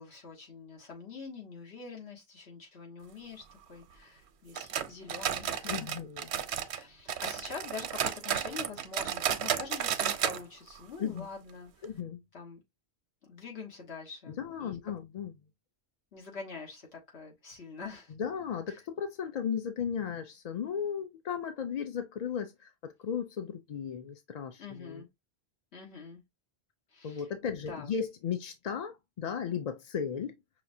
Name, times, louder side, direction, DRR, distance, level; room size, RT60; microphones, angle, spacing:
voice 1, 0.0-6.0 6.7-11.8 12.3-12.6 13.2-14.8 16.1-18.1 18.7-18.8 24.6-25.1 25.7-26.2 26.9-28.0, left 4 dB, 85° left, 1.7 m, -45 dB
sound 1, 4.5-6.8 7.1-10.4 10.7-10.8 11.2-11.3 11.8-11.9, right 9 dB, 85° right, 0.9 m, -32 dB
voice 2, 5.7-6.3 11.0-11.3 11.8-12.2 14.3-15.3 18.1-25.0 27.0-30.3, left 7 dB, 55° left, 0.5 m, -35 dB
5.8 x 2.4 x 2.6 m
omnidirectional pair, 1.1 m